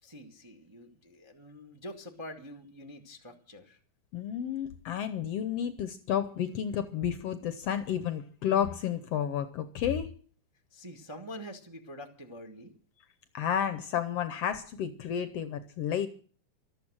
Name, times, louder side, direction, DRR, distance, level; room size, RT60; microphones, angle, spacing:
voice 1, 0.0-3.8 10.7-12.7, equal, 15° right, 5 dB, 1.0 m, -46 dB
voice 2, 4.1-10.1 13.3-16.1, left 9 dB, 70° left, 12 dB, 1.6 m, -31 dB
14.0 x 13.0 x 6.2 m, 0.44 s
omnidirectional pair, 3.4 m